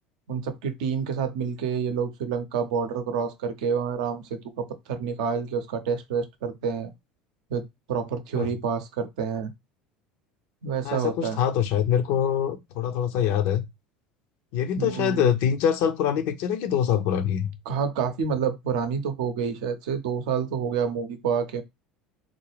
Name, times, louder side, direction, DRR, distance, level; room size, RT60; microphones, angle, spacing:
voice 1, 0.3-6.9 7.5-9.5 10.6-11.4 14.8-15.3 17.7-21.6, right 6 dB, 65° right, 0.6 m, -28 dB
voice 2, 10.8-13.6 14.5-17.5, left 9 dB, 60° left, 0.6 m, -24 dB
3.7 x 2.2 x 3.3 m
figure-of-eight pair, 70°, 4 cm